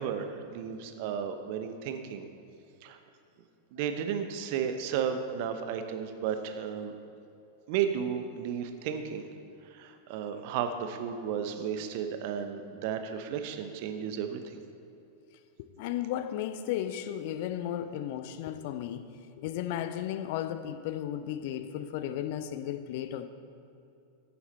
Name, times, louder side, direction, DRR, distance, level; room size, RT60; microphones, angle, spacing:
voice 1, 0.0-2.2 2.8-3.0 3.7-6.9 7.7-9.2 9.7-14.6, right 8 dB, 45° right, 7 dB, 0.9 m, -33 dB
voice 2, 15.6-19.1 19.4-23.3, left 11 dB, 50° left, 11 dB, 0.6 m, -34 dB
15.0 x 7.1 x 4.2 m, 2.7 s
figure-of-eight pair, 90°, 0 cm